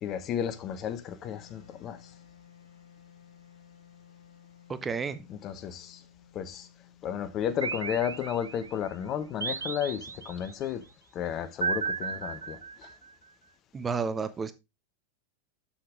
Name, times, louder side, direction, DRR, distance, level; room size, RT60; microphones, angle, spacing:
voice 1, 0.0-2.0 5.4-6.0 6.3-6.7 7.0-10.8 11.1-12.9, left 9 dB, 35° left, 0.9 m, -33 dB
Wind instrument woodwind instrument, 1.2-8.2, left 9 dB, 90° left, 3.3 m, -56 dB
voice 2, 4.7-5.3 13.7-14.5, right 5 dB, 15° right, 0.5 m, -31 dB
sound 1, 7.6-8.7 9.4-10.5 11.6-13.1, right 5 dB, 75° right, 0.4 m, -34 dB
7.2 x 6.8 x 3.4 m
figure-of-eight pair, 90°, 0 cm